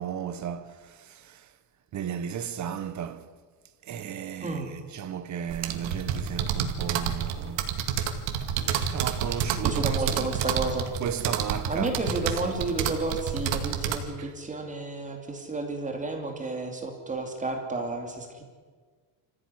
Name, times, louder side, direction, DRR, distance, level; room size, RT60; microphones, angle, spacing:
voice 1, 0.0-1.5 1.9-3.3 3.9-4.6 4.9-7.8 8.6-10.4 11.0-12.2 12.4-12.6 14.2-14.3, right 8 dB, 35° right, 1.3 m, -35 dB
sound 1, 5.5-14.0, right 8 dB, 75° right, 2.3 m, -29 dB
voice 2, 9.6-10.9 11.7-18.4, right 3 dB, 15° right, 2.7 m, -31 dB
25.5 x 15.0 x 9.8 m
cardioid pair, 175°, 46 cm